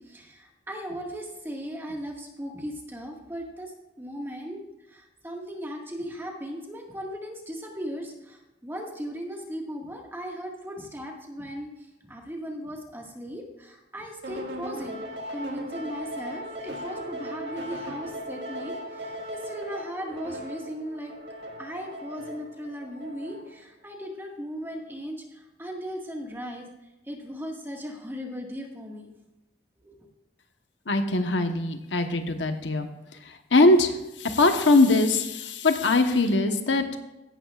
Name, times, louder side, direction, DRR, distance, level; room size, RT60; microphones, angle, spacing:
voice 1, 0.0-3.7 4.0-4.6 4.9-11.7 12.0-15.0 15.3-21.1 21.6-26.7 27.1-29.1 29.8-29.9, equal, 15° right, 0 dB, 1.8 m, -37 dB
sound 1, 14.2-23.6, equal, 70° right, 1.9 m, -38 dB
voice 2, 30.9-32.9 33.5-33.9 34.2-36.8, left 2 dB, 85° left, 6 dB, 1.1 m, -21 dB
16.5 x 12.0 x 2.5 m, 0.95 s
head